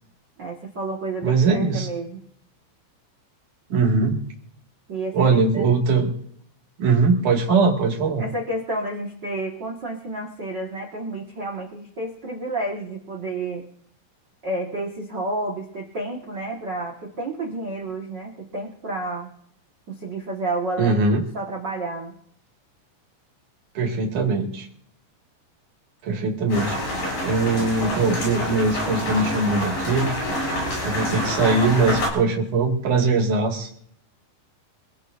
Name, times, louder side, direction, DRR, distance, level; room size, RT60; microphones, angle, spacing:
voice 1, 0.4-2.2 4.9-5.7 8.2-13.6 14.4-19.3 19.9-22.1, right 2 dB, 85° right, 0 dB, 0.9 m, -30 dB
voice 2, 1.2-1.9 3.7-4.2 5.1-6.1 6.8-8.2 20.8-21.2 23.7-24.7 26.0-26.8 27.2-30.1 30.8-33.8, right 4 dB, 50° right, 0 dB, 3.2 m, -21 dB
sound 1, 26.5-32.1, left 1 dB, 55° left, 8.7 m, -27 dB
26.5 x 16.5 x 2.7 m, 0.66 s
omnidirectional pair, 5.2 m